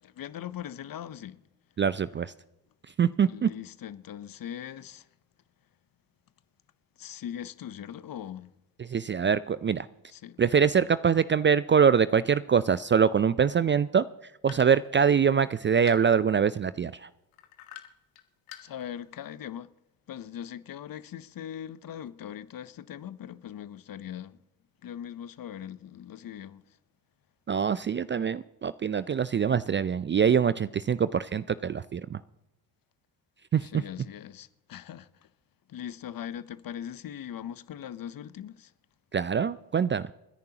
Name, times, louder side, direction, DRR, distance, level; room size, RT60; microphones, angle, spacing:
voice 1, 0.0-1.4 3.3-5.1 7.0-8.5 10.1-10.4 18.6-19.7 20.1-24.4 24.8-26.8 33.6-35.3 35.7-38.7, left 10 dB, 45° left, 0.8 m, -40 dB
voice 2, 1.8-2.3 3.0-3.5 8.8-9.9 10.4-14.0 14.4-17.1 27.5-32.2 33.5-33.7 39.1-40.1, right 7 dB, 25° right, 0.4 m, -24 dB
sound 1, 14.5-16.5 17.3-18.2 18.5-19.1, left 13 dB, 80° left, 1.4 m, -47 dB
29.5 x 10.5 x 2.9 m
hypercardioid pair, 50°, 48 cm